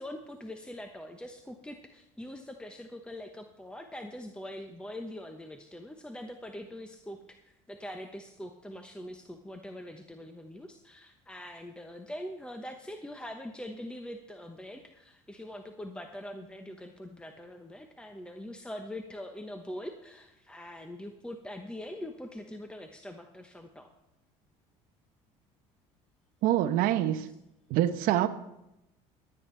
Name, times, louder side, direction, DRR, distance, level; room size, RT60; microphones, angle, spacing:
voice 1, 0.0-7.2 7.5-23.9, left 1 dB, 5° left, 5 dB, 1.1 m, -43 dB
voice 2, 26.4-27.2 27.7-28.3, right 13 dB, 70° right, 9 dB, 1.0 m, -25 dB
23.5 x 9.0 x 3.4 m, 0.88 s
supercardioid pair, 80°, 15 cm